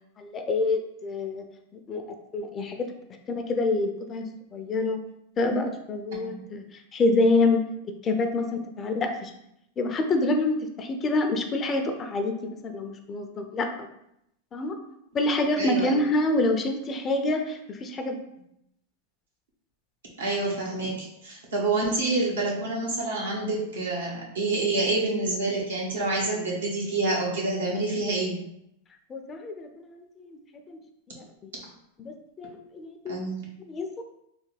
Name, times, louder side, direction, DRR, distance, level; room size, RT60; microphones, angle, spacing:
voice 1, 0.2-1.4 1.7-2.0 2.3-2.9 3.5-5.0 5.4-6.6 6.9-7.6 8.0-9.3 9.8-12.3 12.6-13.7 14.5-14.8 15.1-18.2 29.1-30.4 30.7-30.8 31.2-31.3 32.0-33.3 33.7-33.9, left 2 dB, 30° left, 5 dB, 0.5 m, -27 dB
voice 2, 15.6-15.9 20.2-28.4 33.1-33.4, right 2 dB, 85° right, -3 dB, 1.0 m, -27 dB
3.3 x 2.2 x 3.2 m, 0.80 s
hypercardioid pair, 105°, 0 cm